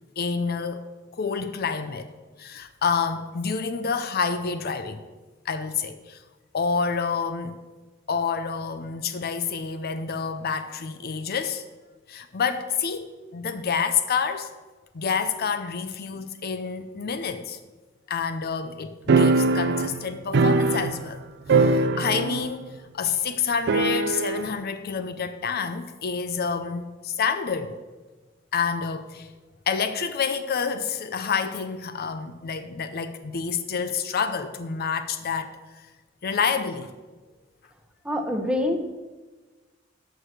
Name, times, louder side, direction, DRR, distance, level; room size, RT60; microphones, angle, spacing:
voice 1, 0.2-0.9 1.1-2.1 2.4-5.0 5.4-6.2 6.5-7.6 8.1-11.6 12.1-14.5 14.9-17.6 18.1-27.8 28.5-29.3 29.7-35.9 36.2-36.9, left 6 dB, 50° left, 10 dB, 0.6 m, -28 dB
sound 1, 19.1-21.2 21.5-22.5 22.8-22.9 23.7-24.5, right 3 dB, 55° right, 0.5 m, -21 dB
voice 2, 38.0-38.8, left 1 dB, 5° right, 4 dB, 1.0 m, -25 dB
12.5 x 4.7 x 6.4 m, 1.3 s
head